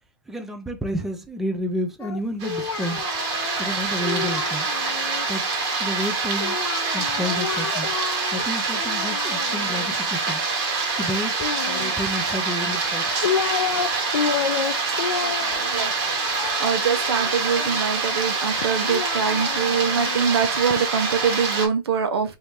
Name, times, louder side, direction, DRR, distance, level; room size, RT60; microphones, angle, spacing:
voice 1, 0.3-3.1 3.6-4.7 5.3-5.5 5.8-6.6 6.9-7.9 8.3-10.4 11.0-11.3 11.7-13.1, equal, ahead, 0.4 m, -30 dB
Singing, 2.0-5.3 6.4-8.4 8.7-9.9 11.3-12.3 12.9-13.9 14.1-17.8 18.6-20.8, left 7 dB, 90° left, 0.5 m, -30 dB
sound 1, 2.4-21.7, right 4 dB, 40° right, 1.4 m, -25 dB
voice 2, 14.8-15.9 16.6-22.3, right 6 dB, 75° right, 0.9 m, -24 dB
3.0 x 2.7 x 3.3 m
hypercardioid pair, 135°, 13 cm